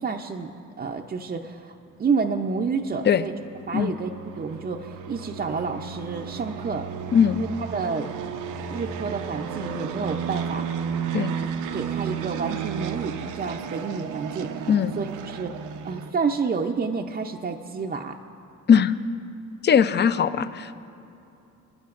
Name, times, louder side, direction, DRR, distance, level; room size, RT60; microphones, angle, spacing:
voice 1, 0.0-0.5 0.8-3.3 3.7-4.1 4.4-6.9 7.4-8.1 8.7-10.7 11.4-18.2, right 5 dB, 30° right, 2 dB, 0.6 m, -29 dB
sound 1, 2.8-16.1, right 7 dB, 85° right, 0.7 m, -33 dB
voice 2, 19.6-20.8, left 7 dB, 35° left, 13 dB, 0.5 m, -19 dB
28.0 x 10.5 x 2.5 m, 2.8 s
cardioid pair, 90°, 30 cm